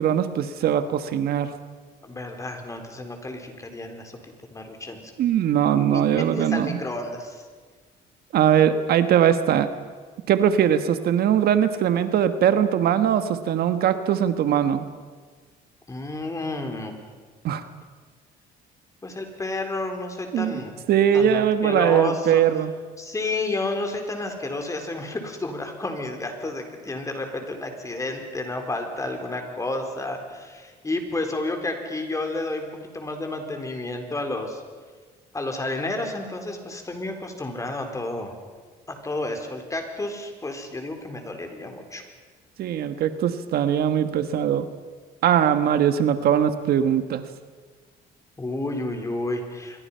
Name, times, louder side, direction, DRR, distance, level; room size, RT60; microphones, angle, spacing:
voice 1, 0.0-1.5 5.2-6.8 8.3-9.7 10.3-14.8 17.4-17.6 20.3-20.6 20.9-22.7 42.6-44.7 45.2-47.2, right 9 dB, 65° right, 10 dB, 1.4 m, -21 dB
voice 2, 2.0-4.2 4.5-5.1 5.7-7.4 15.9-16.9 19.0-20.8 21.1-22.4 23.0-32.7 32.9-34.6 35.3-38.3 39.0-42.0 48.4-49.8, left 2 dB, 20° left, 4 dB, 4.2 m, -31 dB
26.5 x 23.0 x 5.7 m, 1.5 s
cardioid pair, 110°, 17 cm